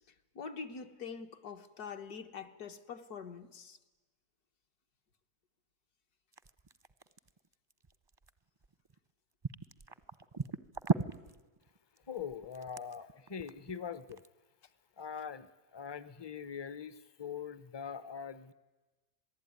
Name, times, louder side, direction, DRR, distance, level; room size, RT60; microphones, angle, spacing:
voice 1, 0.4-3.8, left 6 dB, 70° left, 6 dB, 1.8 m, -44 dB
sound 1, 6.3-9.1 9.4-14.3, right 4 dB, 30° right, 0.5 m, -37 dB
voice 2, 12.1-14.2 15.0-18.5, left 7 dB, 30° left, 16 dB, 0.5 m, -43 dB
27.0 x 19.0 x 9.6 m, 1.2 s
omnidirectional pair, 1.7 m